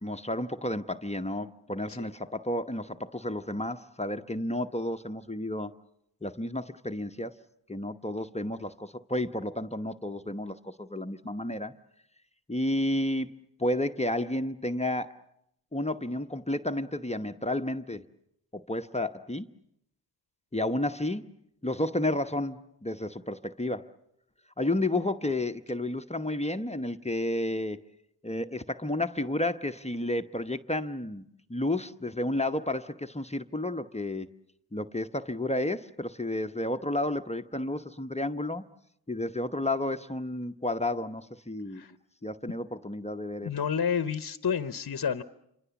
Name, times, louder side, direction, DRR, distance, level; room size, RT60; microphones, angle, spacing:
voice 1, 0.0-5.7 6.2-7.4 7.7-11.7 12.5-13.3 13.6-15.2 15.7-18.1 18.5-19.5 20.5-21.3 21.6-23.9 24.6-27.8 28.2-34.3 34.7-38.6 39.1-41.8 42.2-43.5, left 1 dB, 15° left, 0.9 m, -31 dB
voice 2, 43.4-45.2, left 7 dB, 50° left, 0.9 m, -29 dB
28.0 x 25.0 x 7.0 m
cardioid pair, 45°, 43 cm